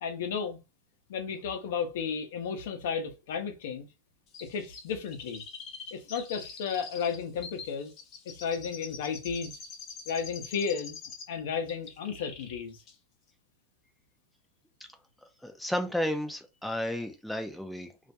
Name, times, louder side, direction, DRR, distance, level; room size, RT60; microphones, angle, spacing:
voice 1, 0.0-0.6 1.1-3.9 4.4-5.4 5.9-7.9 8.3-9.6 10.1-11.0 11.3-12.8, left 6 dB, 75° left, 0.6 m, -33 dB
Chirp tweet, 4.3-11.4 11.7-12.6 12.9-13.0, left 5 dB, 40° left, 0.8 m, -45 dB
voice 2, 15.4-17.9, left 1 dB, ahead, 0.4 m, -32 dB
2.3 x 2.1 x 2.7 m
hypercardioid pair, 120°, 0 cm